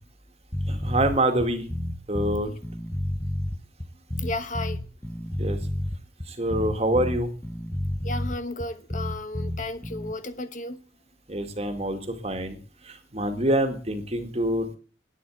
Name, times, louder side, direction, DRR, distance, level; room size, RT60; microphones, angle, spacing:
sound 1, 0.5-10.1, left 1 dB, 15° left, 0.8 m, -30 dB
voice 1, 0.7-1.7 2.1-2.5 5.4-5.6 6.3-7.3 11.3-12.6 12.9-14.8, right 1 dB, 35° right, 2.2 m, -26 dB
voice 2, 4.2-4.8 8.0-10.8, left 2 dB, 45° left, 1.2 m, -33 dB
11.0 x 9.4 x 8.7 m
head